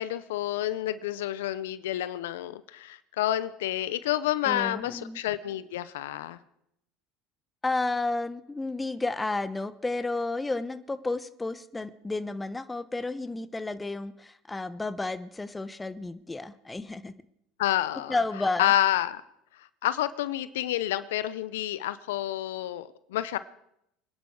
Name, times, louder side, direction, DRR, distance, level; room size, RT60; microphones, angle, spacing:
voice 1, 0.0-6.4 17.6-18.2 18.6-19.2 19.6-23.4, left 13 dB, 85° left, 15 dB, 0.7 m, -29 dB
voice 2, 4.4-5.2 7.6-17.1 18.1-18.7, left 2 dB, 15° left, 13 dB, 1.1 m, -32 dB
26.0 x 10.5 x 4.9 m, 0.77 s
hypercardioid pair, 85°, 0 cm